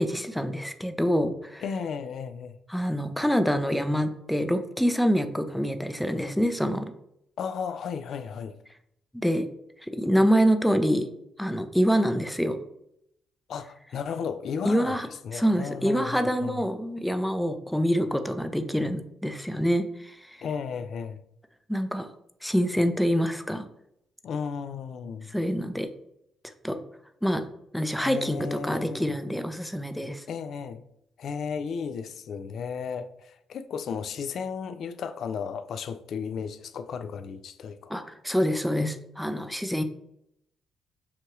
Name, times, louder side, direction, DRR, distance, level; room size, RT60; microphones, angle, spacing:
voice 1, 0.0-1.6 2.7-6.8 9.1-9.5 9.8-11.1 11.4-12.6 14.6-15.1 15.3-20.4 21.7-22.1 22.4-23.6 25.3-25.9 26.6-26.8 27.2-27.4 27.7-30.2 37.9-39.8, equal, ahead, 0.5 m, -26 dB
voice 2, 1.6-2.6 7.4-8.6 13.5-15.0 15.2-16.5 20.4-21.2 24.2-25.3 28.0-29.1 30.3-30.8 31.2-37.9, left 6 dB, 65° left, 0.4 m, -34 dB
5.7 x 2.3 x 3.0 m
cardioid pair, 90°, 0 cm